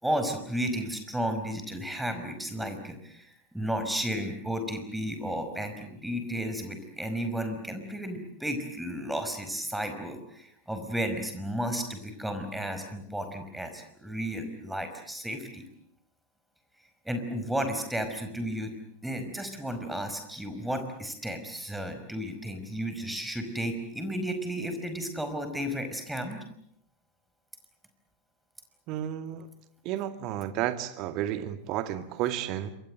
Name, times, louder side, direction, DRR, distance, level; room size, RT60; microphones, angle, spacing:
voice 1, 0.0-15.6 17.0-18.7 19.0-26.4, equal, 5° right, 8 dB, 5.1 m, -33 dB
voice 2, 28.9-29.5 29.8-32.7, right 12 dB, 40° right, 10 dB, 2.2 m, -32 dB
27.5 x 23.5 x 7.9 m, 0.72 s
figure-of-eight pair, 90°, 0 cm